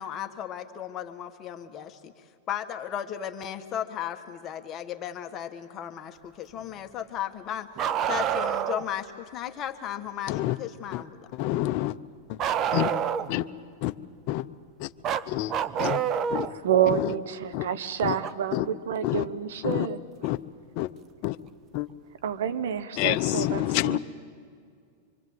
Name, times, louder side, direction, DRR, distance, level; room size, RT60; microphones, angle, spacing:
voice 1, 0.0-2.1 2.5-7.7 8.0-11.2, left 10 dB, 30° left, 6 dB, 1.4 m, -35 dB
Bark, 7.8-8.9 12.4-13.4 15.0-16.5 18.2-18.3 20.2-20.3 21.4-21.5, right 9 dB, 35° right, 0.8 m, -27 dB
voice 2, 11.4-11.9 12.7-12.9 13.3-13.5 13.8-13.9 14.3-14.4 14.8-14.9 15.3-15.5 15.8-16.0 16.3-16.5 17.5-17.7 18.0-18.1 18.5-18.7 19.0-19.2 19.6-19.9 20.2-20.4 20.8-20.9 21.2-21.4 21.7-21.9 23.0-24.0, left 16 dB, 50° left, 10 dB, 0.7 m, -27 dB
voice 3, 16.5-20.0 22.2-24.0, right 9 dB, 75° right, 14 dB, 1.2 m, -28 dB
25.0 x 25.0 x 7.9 m, 2.3 s
hypercardioid pair, 130°, 0 cm